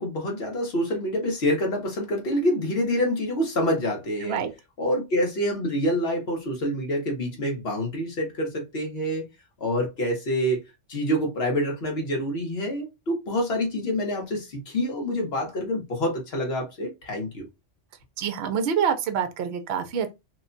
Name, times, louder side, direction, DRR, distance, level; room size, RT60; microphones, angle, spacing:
voice 1, 0.0-4.4 4.8-9.3 9.6-10.6 10.9-17.5, equal, 60° left, 1.4 m, -27 dB
voice 2, 18.2-20.1, right 7 dB, 65° right, 0.8 m, -26 dB
3.0 x 2.2 x 3.8 m
omnidirectional pair, 1.2 m